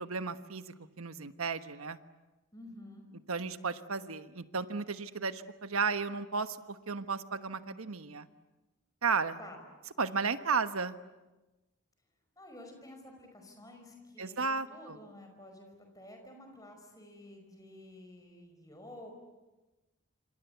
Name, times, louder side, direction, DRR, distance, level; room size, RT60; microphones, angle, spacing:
voice 1, 0.0-2.0 3.3-8.3 9.0-9.4 10.0-10.9 14.2-15.0, right 4 dB, 90° right, 10 dB, 1.3 m, -34 dB
voice 2, 2.5-3.1 9.4-9.6 12.4-19.1, left 1 dB, 15° left, 4 dB, 5.3 m, -51 dB
27.0 x 27.0 x 8.2 m, 1.1 s
head